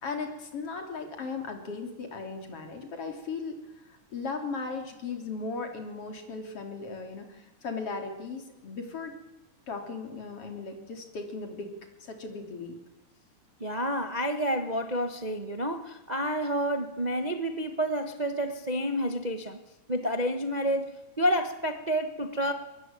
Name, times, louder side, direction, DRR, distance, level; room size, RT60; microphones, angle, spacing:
voice 1, 0.0-3.6 3.9-9.1 9.7-11.7 12.0-12.8, left 4 dB, 50° left, 5 dB, 4.1 m, -37 dB
voice 2, 13.6-19.6 19.9-22.5, equal, 70° right, 7 dB, 0.4 m, -29 dB
22.5 x 21.5 x 9.0 m, 1.1 s
omnidirectional pair, 3.3 m